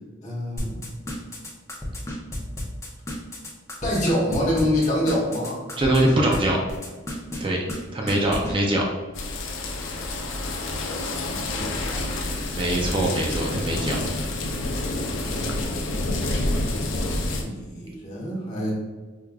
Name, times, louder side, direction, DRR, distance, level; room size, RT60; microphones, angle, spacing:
voice 1, 0.2-1.0 3.8-5.6 11.1-12.1 17.4-18.7, left 1 dB, 40° left, -5 dB, 1.0 m, -26 dB
sound 1, 0.6-6.4 6.7-7.4 7.7-7.8 8.1-8.5, left 1 dB, 15° left, 0.6 m, -32 dB
voice 2, 5.8-6.6 7.4-7.6 7.9-8.9 12.5-14.0, right 1 dB, 25° right, -1 dB, 0.4 m, -22 dB
sound 2, 9.1-17.4, left 2 dB, 75° left, 0.5 m, -28 dB
4.6 x 2.4 x 2.3 m, 1.3 s
head